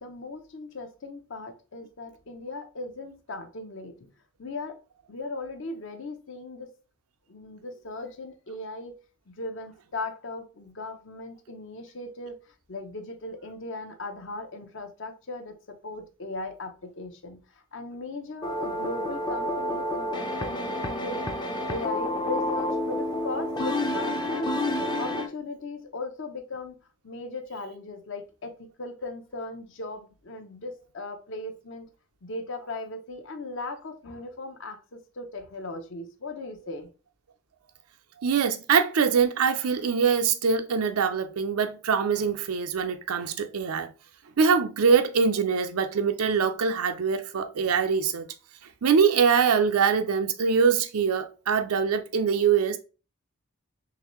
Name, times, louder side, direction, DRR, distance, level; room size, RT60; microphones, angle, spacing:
voice 1, 0.0-4.1 4.4-4.8 5.1-6.7 7.3-8.9 9.3-12.3 12.7-17.4 17.7-21.3 21.7-24.6 25.0-26.8 27.0-31.9 32.2-36.9, left 2 dB, 60° left, 0.7 m, -38 dB
sound 1, 18.4-25.3, left 1 dB, 20° left, 0.4 m, -29 dB
voice 2, 38.2-43.9 44.4-48.2 48.8-52.8, right 6 dB, 90° right, 0.5 m, -23 dB
3.8 x 3.1 x 3.0 m
head